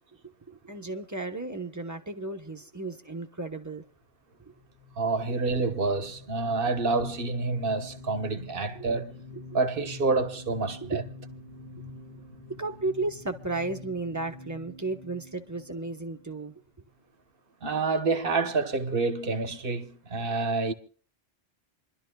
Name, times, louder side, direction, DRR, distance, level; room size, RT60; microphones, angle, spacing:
voice 1, 0.2-3.8 8.7-8.9 9.3-9.4 10.8-11.0 12.6-16.5, right 2 dB, 15° right, 1.1 m, -34 dB
sound 1, 4.5-16.9, left 3 dB, 40° left, 1.8 m, -46 dB
voice 2, 5.0-9.2 9.5-11.0 17.6-20.7, right 3 dB, 60° right, 1.3 m, -28 dB
28.0 x 12.0 x 2.3 m
omnidirectional pair, 1.1 m